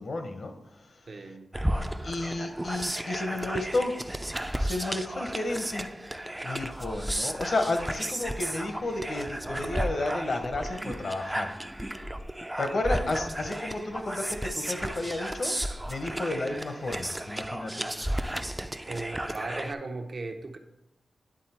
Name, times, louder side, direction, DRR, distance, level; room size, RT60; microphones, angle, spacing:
voice 1, 0.0-1.1 2.0-4.0 4.6-5.9 6.4-11.5 12.6-15.5 15.9-17.9, left 2 dB, 60° left, 6 dB, 1.0 m, -32 dB
voice 2, 1.1-1.5 18.9-20.6, right 3 dB, 60° right, 4 dB, 0.8 m, -37 dB
sound 1, 1.5-19.7, right 1 dB, 10° right, 0.4 m, -33 dB
10.0 x 3.7 x 4.4 m, 0.88 s
cardioid pair, 65°, 0 cm